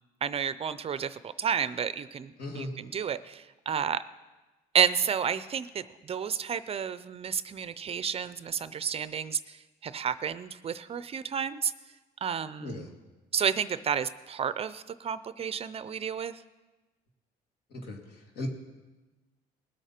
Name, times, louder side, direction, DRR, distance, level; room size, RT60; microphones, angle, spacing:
voice 1, 0.2-4.0 4.7-11.7 12.2-12.9 13.3-16.4, right 7 dB, 35° right, 14 dB, 0.5 m, -31 dB
voice 2, 2.4-2.7 12.6-12.9 17.7-18.5, left 2 dB, 70° left, 2 dB, 2.5 m, -37 dB
20.0 x 8.1 x 4.4 m, 1.2 s
cardioid pair, 110°, 17 cm